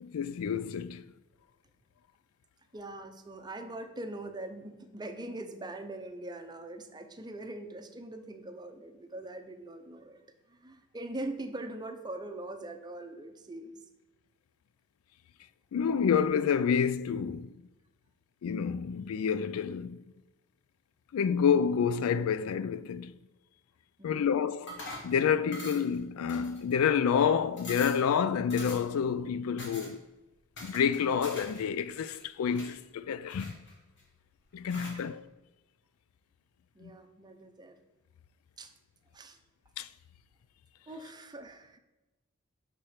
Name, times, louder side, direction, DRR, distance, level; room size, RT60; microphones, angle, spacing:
voice 1, 0.0-1.0 15.7-17.5 18.4-20.0 21.1-23.1 24.0-30.0 30.6-33.5 34.5-35.2 36.8-36.9 39.8-39.9, left 7 dB, 80° left, 0.3 m, -28 dB
voice 2, 2.7-10.2 10.5-13.8 24.0-24.4 34.7-35.0 36.7-37.8 38.6-38.7 39.1-39.4 40.9-41.8, right 2 dB, 20° right, 0.6 m, -42 dB
sound 1, 24.7-25.1 25.5-26.0 26.3-26.9 27.2-27.3 27.6-28.0 28.5-29.0 29.6-29.9 30.6-31.6 31.9-32.7 33.3-34.0 34.7-35.0, left 2 dB, 60° left, 1.7 m, -44 dB
5.9 x 4.3 x 4.8 m
head